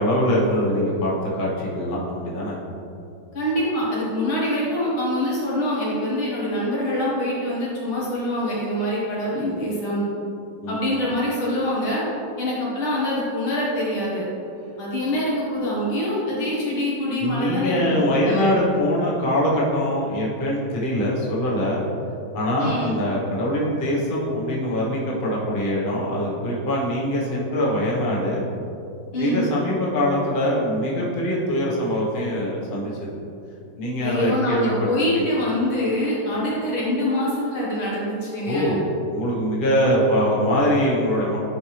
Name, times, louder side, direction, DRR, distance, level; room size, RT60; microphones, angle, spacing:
voice 1, 0.0-2.5 10.6-10.8 17.2-21.8 22.3-28.4 29.2-33.2 33.8-34.7 35.1-35.2 38.4-38.8 39.1-41.4, equal, 30° left, -5 dB, 1.1 m, -23 dB
voice 2, 3.3-10.1 10.7-12.0 12.4-14.3 14.8-18.5 22.6-22.9 29.1-29.4 34.0-38.8, left 1 dB, 80° left, -6 dB, 2.5 m, -25 dB
9.7 x 4.4 x 3.3 m, 2.7 s
omnidirectional pair, 2.2 m